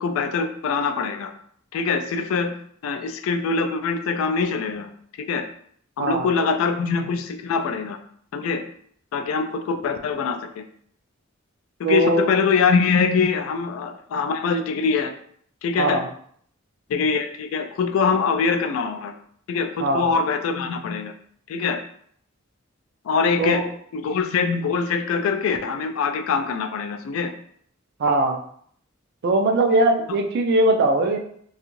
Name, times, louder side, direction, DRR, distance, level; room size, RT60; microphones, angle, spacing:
voice 1, 0.0-1.3 1.7-2.5 2.8-4.9 5.3-5.5 6.0-8.0 8.3-8.6 9.1-10.6 11.8-15.1 15.6-16.0 16.9-19.1 19.5-21.1 21.5-21.8 23.0-23.6 23.9-27.3, left 5 dB, 85° left, 8 dB, 0.3 m, -23 dB
voice 2, 11.8-12.3 15.8-16.0 19.8-20.1 23.4-23.6 28.0-28.4 29.2-31.2, right 2 dB, 55° right, 3 dB, 0.4 m, -20 dB
2.5 x 2.4 x 3.0 m, 0.63 s
head